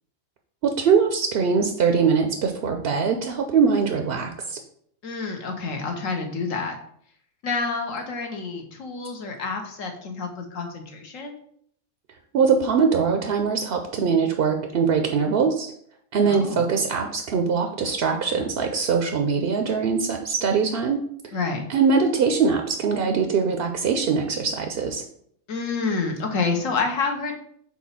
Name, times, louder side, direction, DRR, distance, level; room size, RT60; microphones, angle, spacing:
voice 1, 0.6-4.6 12.3-15.7 16.1-21.0 21.7-25.0, right 5 dB, 60° right, 4 dB, 0.7 m, -22 dB
voice 2, 5.0-6.8 7.4-11.3 16.2-16.7 21.3-21.6 25.5-27.3, left 4 dB, 70° left, 4 dB, 1.4 m, -28 dB
4.7 x 4.0 x 5.5 m, 0.65 s
omnidirectional pair, 1.4 m